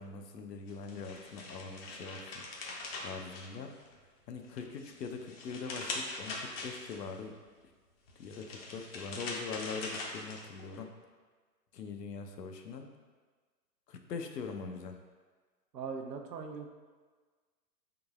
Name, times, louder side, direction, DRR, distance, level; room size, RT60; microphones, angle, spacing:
voice 1, 0.0-2.4 3.0-3.7 4.3-7.3 8.2-10.9 11.7-12.9 13.9-15.0, left 5 dB, 75° left, 4 dB, 0.7 m, -42 dB
sound 1, 0.7-4.0 4.4-7.2 8.1-10.8, left 3 dB, 40° left, 0.6 m, -42 dB
voice 2, 15.7-16.7, right 5 dB, 75° right, 4 dB, 0.7 m, -40 dB
4.8 x 3.8 x 2.4 m, 1.4 s
hypercardioid pair, 125°, 50 cm